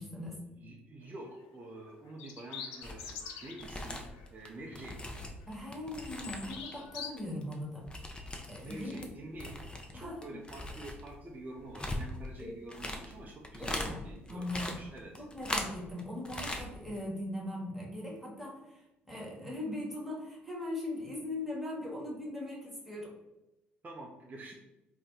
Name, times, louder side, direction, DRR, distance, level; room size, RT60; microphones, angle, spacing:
voice 1, 0.0-0.4 5.5-7.9 8.5-9.1 9.9-10.4 12.4-12.5 13.6-14.0 14.3-14.8 15.2-23.1, left 1 dB, 5° right, -4 dB, 1.2 m, -40 dB
voice 2, 0.5-4.0 4.3-5.0 8.6-9.6 9.9-15.1 23.8-24.5, right 2 dB, 30° right, -1 dB, 0.5 m, -47 dB
sound 1, 1.0-1.3 2.1-3.7 4.1-4.3 4.7-5.4 5.7-7.1, left 6 dB, 70° left, 0.4 m, -45 dB
sound 2, 2.8-3.1 3.5-6.7 7.0-9.1 9.4-13.9 14.3-16.0 16.3-16.7 17.0-17.1, left 1 dB, 15° left, 0.6 m, -40 dB
2.6 x 2.2 x 3.6 m, 0.95 s
hypercardioid pair, 55°, 6 cm